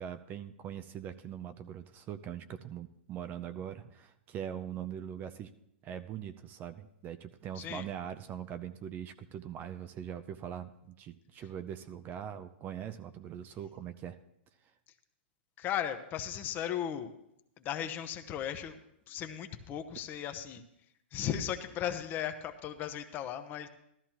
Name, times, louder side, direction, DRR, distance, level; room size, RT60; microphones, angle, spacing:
voice 1, 0.0-5.5 5.8-14.2, right 9 dB, 30° right, 12 dB, 0.5 m, -42 dB
voice 2, 15.6-17.1 17.6-18.8 19.1-20.6 21.1-23.7, left 10 dB, 30° left, 7 dB, 0.9 m, -36 dB
13.0 x 13.0 x 3.0 m, 0.78 s
hypercardioid pair, 125°, 6 cm